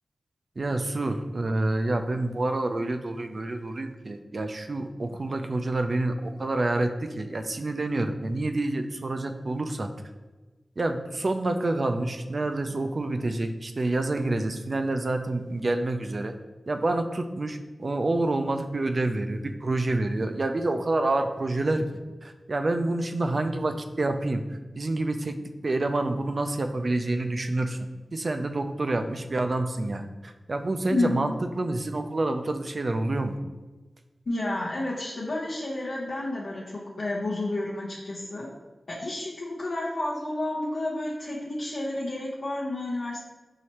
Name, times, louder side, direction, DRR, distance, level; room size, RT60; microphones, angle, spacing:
voice 1, 0.6-9.9 10.8-16.3 16.7-21.9 22.2-25.4 25.6-27.8 28.1-33.4, right 2 dB, 55° right, 6 dB, 0.4 m, -28 dB
voice 2, 30.9-31.3 34.3-38.5 38.9-43.2, left 2 dB, 75° left, -7 dB, 0.7 m, -30 dB
4.7 x 3.1 x 2.9 m, 1.2 s
cardioid pair, 50°, 0 cm